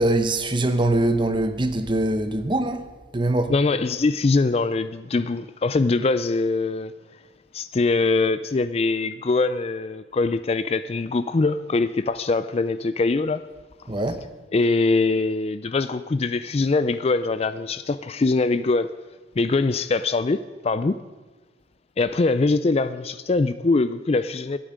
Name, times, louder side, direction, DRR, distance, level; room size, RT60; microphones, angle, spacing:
voice 1, 0.0-2.8 3.1-3.5 13.9-14.2, right 1 dB, 25° right, 0.9 m, -22 dB
voice 2, 3.5-6.9 7.5-13.4 14.5-18.9 19.4-21.0 22.0-24.6, left 3 dB, 30° left, 0.4 m, -23 dB
23.5 x 8.9 x 5.1 m
head